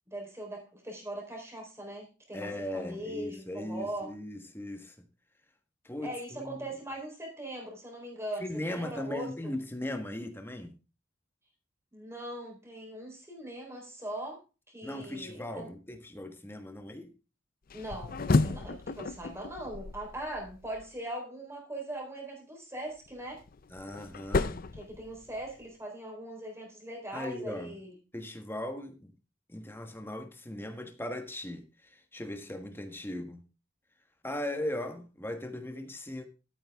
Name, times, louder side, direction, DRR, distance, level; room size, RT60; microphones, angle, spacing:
voice 1, 0.1-4.1 6.0-9.5 11.9-14.4 14.7-15.7 17.7-23.4 24.8-27.9, right 1 dB, 15° right, 3.9 m, -40 dB
voice 2, 2.3-5.1 5.8-6.6 8.4-10.7 14.8-17.1 23.7-24.7 27.1-27.7 28.1-29.1 29.5-33.4 34.2-36.3, left 1 dB, 10° left, 1.4 m, -38 dB
sound 1, 17.7-20.9 23.1-25.6, left 3 dB, 45° left, 0.5 m, -32 dB
12.5 x 9.3 x 3.6 m
head